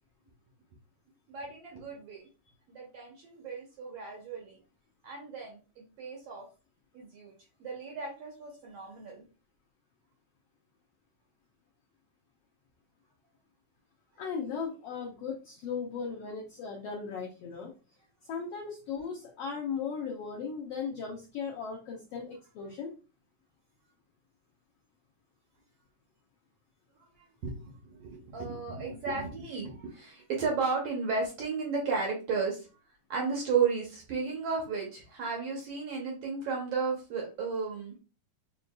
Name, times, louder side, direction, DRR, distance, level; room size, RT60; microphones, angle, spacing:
voice 1, 1.3-2.2 2.7-4.6 5.0-6.5 6.9-7.3 7.6-9.2 27.4-32.7 33.1-37.9, right 5 dB, 65° right, -1 dB, 1.6 m, -34 dB
voice 2, 14.2-17.7 18.3-22.9, left 6 dB, 80° left, -1 dB, 1.4 m, -37 dB
6.9 x 2.6 x 2.2 m, 0.33 s
omnidirectional pair, 3.6 m